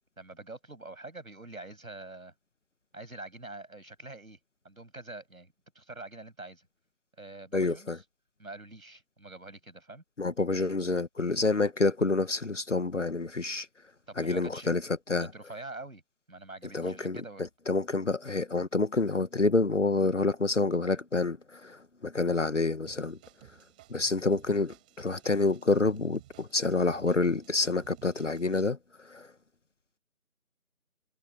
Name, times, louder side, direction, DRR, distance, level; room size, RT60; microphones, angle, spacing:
voice 1, 0.2-2.3 2.9-4.4 4.6-6.7 7.2-8.0 8.4-10.0 14.1-14.8 15.2-16.0 16.3-17.4, right 2 dB, 75° right, 7.9 m, -45 dB
voice 2, 7.5-8.0 10.2-13.7 14.2-15.3 16.7-23.2 23.9-29.3, left 3 dB, 60° left, 1.4 m, -28 dB
sound 1, 22.9-28.7, right 16 dB, 5° right, 7.4 m, -56 dB
figure-of-eight pair, 175°, 42 cm